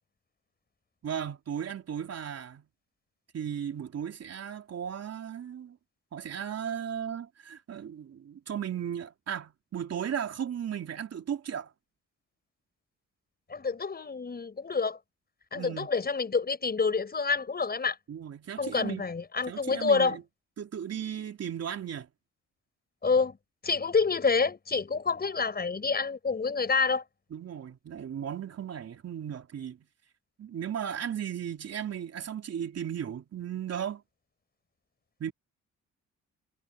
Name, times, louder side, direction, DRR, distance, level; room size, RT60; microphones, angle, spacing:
voice 1, 1.0-2.7 3.3-5.8 6.1-11.7 15.5-15.9 18.1-19.1 19.5-20.2 20.6-22.1 27.3-29.8 30.4-34.0 35.2-35.3, right 8 dB, 55° right, 3.5 m, -36 dB
voice 2, 13.5-15.0 15.5-18.0 18.6-20.2 23.0-23.4 23.6-27.0, left 4 dB, 30° left, 6.1 m, -28 dB
cardioid pair, 90°, 30 cm